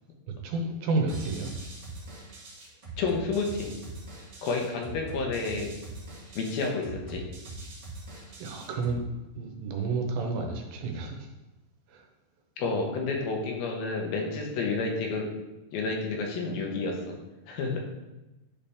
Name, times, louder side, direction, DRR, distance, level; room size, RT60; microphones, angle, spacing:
voice 1, 0.3-1.5 8.4-9.0 9.4-11.3 11.9-12.0, right 3 dB, 80° right, 2 dB, 2.8 m, -31 dB
sound 1, 1.1-9.1, right 2 dB, 35° right, 2.2 m, -42 dB
voice 2, 3.0-3.7 4.4-5.7 6.4-7.2 12.6-15.3 15.7-17.1 17.5-17.8, left 3 dB, 85° left, 0 dB, 3.0 m, -30 dB
10.5 x 4.4 x 3.5 m, 1.1 s
omnidirectional pair, 4.1 m